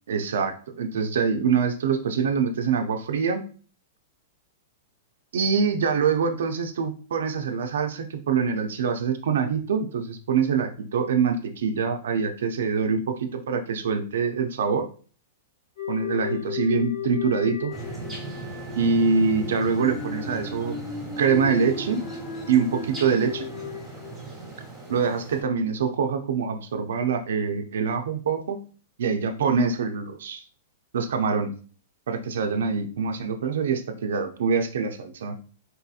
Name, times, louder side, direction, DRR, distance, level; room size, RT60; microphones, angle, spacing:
voice 1, 0.1-3.5 5.3-14.9 15.9-17.7 18.8-20.8 21.2-22.0 22.5-23.5 24.9-28.6 29.0-30.4 30.9-31.5 32.1-35.4, right 5 dB, 80° right, 5 dB, 0.4 m, -24 dB
sound 1, 15.8-25.0, left 6 dB, 45° left, 0.9 m, -35 dB
sound 2, 17.7-25.4, right 3 dB, ahead, 1.0 m, -39 dB
4.1 x 2.7 x 2.3 m, 0.40 s
hypercardioid pair, 160°, 0 cm